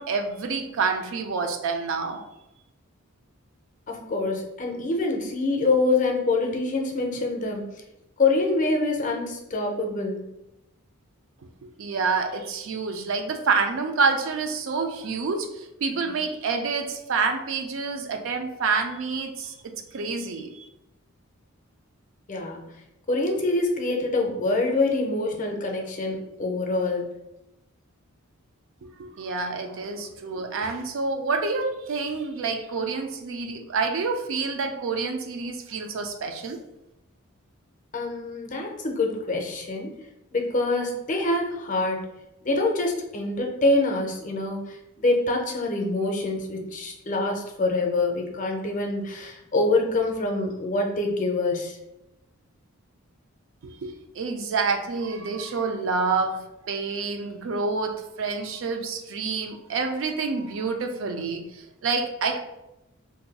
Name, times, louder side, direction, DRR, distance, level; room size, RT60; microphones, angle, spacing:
voice 1, 0.0-2.2 11.8-19.5 19.9-20.7 29.0-36.6 53.6-62.4, right 4 dB, 60° right, 5 dB, 0.4 m, -28 dB
voice 2, 3.9-7.6 8.2-10.2 22.3-22.6 23.1-27.1 37.9-40.0 40.3-42.1 42.4-51.8, left 2 dB, 35° left, 2 dB, 0.5 m, -25 dB
2.6 x 2.3 x 3.9 m, 0.91 s
head